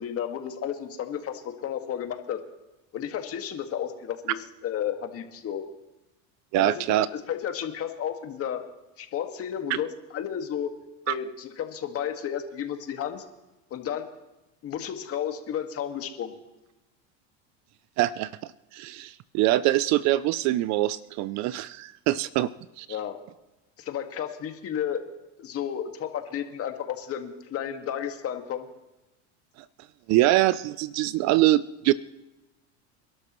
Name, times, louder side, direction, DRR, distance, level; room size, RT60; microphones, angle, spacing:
voice 1, 0.0-2.4 2.9-5.6 6.5-8.6 9.0-10.7 11.1-13.2 13.7-14.1 14.6-16.3 22.9-23.2 23.8-25.0 25.4-28.7, left 9 dB, 40° left, 5 dB, 1.8 m, -32 dB
voice 2, 6.5-7.1 11.1-11.2 18.0-18.3 18.7-22.5 22.8-22.9 30.1-31.9, right 16 dB, 50° right, 18 dB, 0.5 m, -23 dB
28.0 x 12.0 x 3.1 m, 1.0 s
supercardioid pair, 115°, 36 cm